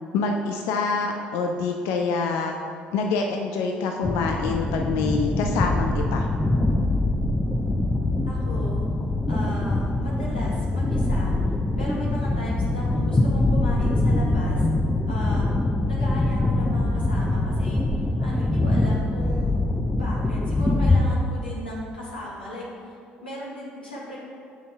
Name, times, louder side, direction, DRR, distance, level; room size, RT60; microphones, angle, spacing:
voice 1, 0.1-2.6 2.9-6.3, left 4 dB, 65° left, 3 dB, 0.4 m, -26 dB
sound 1, 4.0-21.1, left 2 dB, 10° left, 0.6 m, -23 dB
voice 2, 8.3-8.8 9.3-11.4 11.8-14.7 15.1-15.5 15.9-17.9 18.2-19.6 19.9-22.9 23.2-24.2, left 1 dB, 90° left, -6 dB, 1.3 m, -36 dB
7.5 x 5.3 x 3.4 m, 2.3 s
figure-of-eight pair, 50°, 5 cm